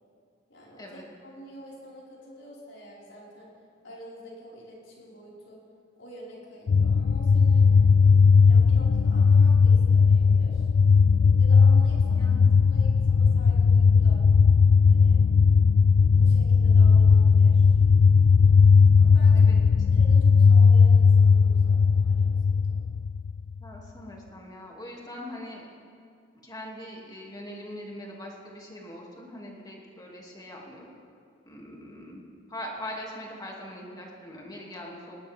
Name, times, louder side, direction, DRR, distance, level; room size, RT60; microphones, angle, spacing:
voice 1, 0.5-0.9 1.2-3.5 3.8-5.6 6.0-7.7 8.3-10.7 11.4-14.3 14.9-15.2 16.1-17.8 19.0-22.8, equal, 85° left, -6 dB, 5.3 m, -47 dB
sound 1, 6.7-23.5, left 5 dB, 65° left, 0.3 m, -18 dB
voice 2, 12.1-12.5 19.3-19.6 19.9-20.0 23.6-25.6 26.4-31.0 31.5-32.2 32.5-35.2, left 1 dB, 20° left, -2 dB, 2.7 m, -41 dB
19.5 x 19.0 x 3.7 m, 2.3 s
head